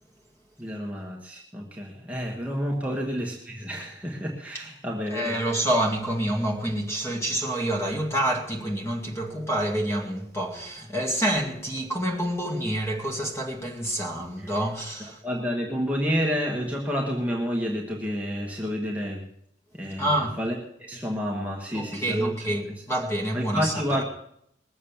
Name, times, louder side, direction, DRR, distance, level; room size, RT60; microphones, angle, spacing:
voice 1, 0.6-5.6 14.4-14.5 15.0-19.2 19.7-22.3 23.3-24.0, equal, 10° right, 1.4 m, -30 dB
voice 2, 5.1-15.2 20.0-20.4 21.7-24.0, right 1 dB, 15° left, 2.1 m, -27 dB
20.5 x 7.3 x 7.1 m
head